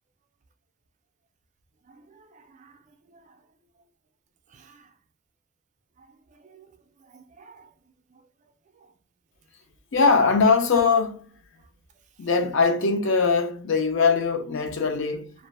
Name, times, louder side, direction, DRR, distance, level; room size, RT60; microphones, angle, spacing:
voice 1, 1.9-2.8 3.1-3.3 4.5-4.9 6.4-6.6 7.0-7.7, right 4 dB, 35° right, 0.4 m, -53 dB
voice 2, 9.9-11.3 12.2-15.5, left 4 dB, 60° left, 0.5 m, -21 dB
2.5 x 2.0 x 3.1 m
head